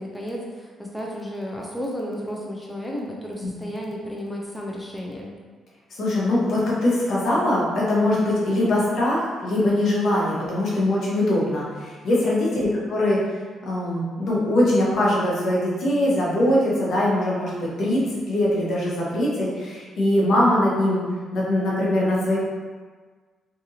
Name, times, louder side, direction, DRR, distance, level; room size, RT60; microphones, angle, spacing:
voice 1, 0.0-5.3 12.5-12.8, equal, 5° left, -3 dB, 0.4 m, -33 dB
voice 2, 6.0-13.2 13.6-18.0 18.3-21.1 21.3-22.4, left 1 dB, 65° left, -5 dB, 0.9 m, -22 dB
2.7 x 2.5 x 2.7 m, 1.5 s
cardioid pair, 90°, 0 cm